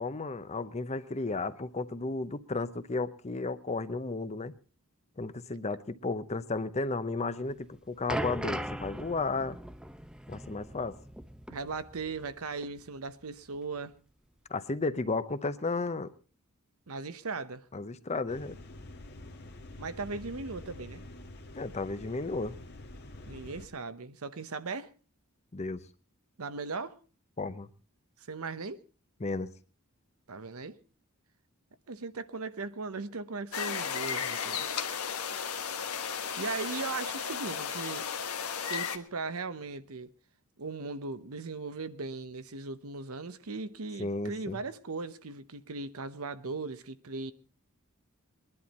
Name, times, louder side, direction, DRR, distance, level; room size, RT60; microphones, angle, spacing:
voice 1, 0.0-4.5 5.2-9.6 10.3-11.0 14.5-16.1 17.7-18.6 21.5-22.5 25.5-25.8 27.4-27.7 29.2-29.5 44.0-44.6, left 3 dB, 30° left, 0.7 m, -33 dB
sound 1, 7.5-12.4 12.6-12.8 13.5-13.6, right 1 dB, 5° right, 0.6 m, -39 dB
voice 2, 11.5-13.9 16.9-17.7 19.8-21.0 23.3-24.9 26.4-27.0 28.3-28.8 30.3-30.8 31.9-34.7 36.4-38.1 38.6-40.1 40.6-47.3, right 4 dB, 80° right, 0.9 m, -38 dB
sound 2, 18.3-23.7, left 1 dB, 50° left, 1.4 m, -47 dB
sound 3, 33.5-39.0, left 7 dB, 85° left, 1.3 m, -34 dB
21.5 x 11.0 x 4.2 m
head